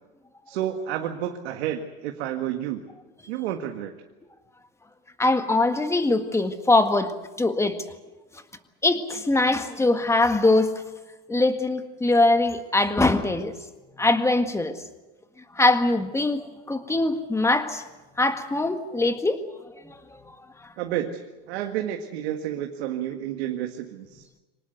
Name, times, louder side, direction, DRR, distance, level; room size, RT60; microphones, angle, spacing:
voice 1, 0.5-2.8 3.3-3.9 20.8-21.2 21.5-24.2, right 11 dB, 80° right, 4 dB, 1.8 m, -30 dB
voice 2, 5.2-7.1 7.4-7.8 8.8-10.7 11.3-13.5 14.0-14.7 15.5-17.8 18.2-19.4 19.8-20.2, left 2 dB, 10° left, 8 dB, 1.7 m, -22 dB
25.0 x 19.0 x 8.0 m, 1.2 s
supercardioid pair, 120°, 32 cm